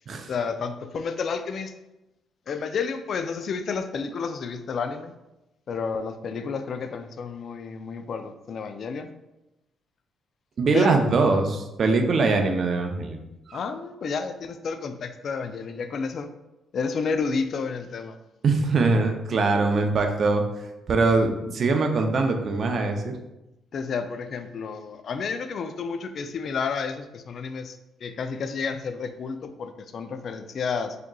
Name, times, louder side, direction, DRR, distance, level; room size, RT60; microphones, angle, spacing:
voice 1, 0.3-1.7 2.5-5.1 5.7-9.1 10.7-11.0 13.5-16.3 16.7-18.2 23.7-31.0, left 5 dB, 55° left, 9 dB, 0.3 m, -31 dB
voice 2, 10.6-13.6 18.4-20.4 20.9-23.1, right 3 dB, 50° right, 4 dB, 0.5 m, -22 dB
4.8 x 2.9 x 2.3 m, 0.96 s
cardioid pair, 90°, 0 cm